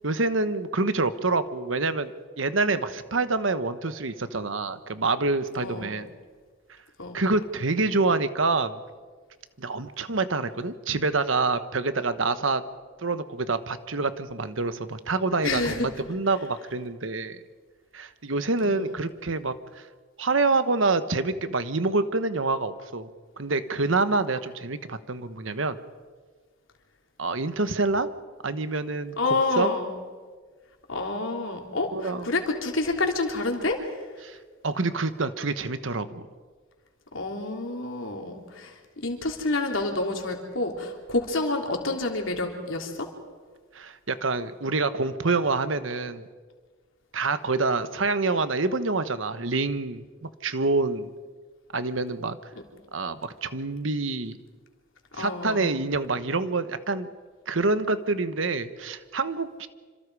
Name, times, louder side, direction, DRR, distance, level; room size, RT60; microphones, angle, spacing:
voice 1, 0.0-2.1 2.4-6.1 7.1-8.8 9.6-12.6 13.0-17.4 17.9-19.8 20.2-23.1 23.4-25.8 27.2-28.1 28.4-29.1 29.6-29.7 31.9-32.3 34.2-34.4 34.6-36.2 43.7-46.3 47.1-51.1 51.7-52.4 52.9-54.4 55.1-57.1 57.5-59.7, right 3 dB, 75° right, 11 dB, 1.3 m, -26 dB
voice 2, 5.6-5.9 7.0-7.2 15.4-15.9 18.6-19.0 29.2-29.9 30.9-34.1 37.1-43.1 55.2-55.7, left 2 dB, 80° left, 2 dB, 3.5 m, -28 dB
27.0 x 26.5 x 4.9 m, 1.5 s
head